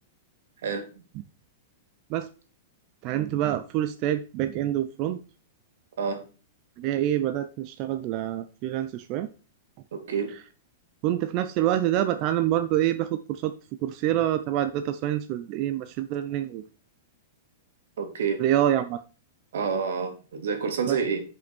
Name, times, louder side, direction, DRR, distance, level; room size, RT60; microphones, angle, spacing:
voice 1, 0.6-1.0 6.0-6.2 9.9-10.3 18.0-18.4 19.5-21.2, right 6 dB, 80° right, 2.5 m, -28 dB
voice 2, 3.0-5.2 6.8-9.3 11.0-13.5 13.8-16.6 18.4-19.0 20.9-21.0, right 12 dB, 35° right, 0.5 m, -26 dB
8.7 x 5.4 x 4.4 m
supercardioid pair, 155°, 0 cm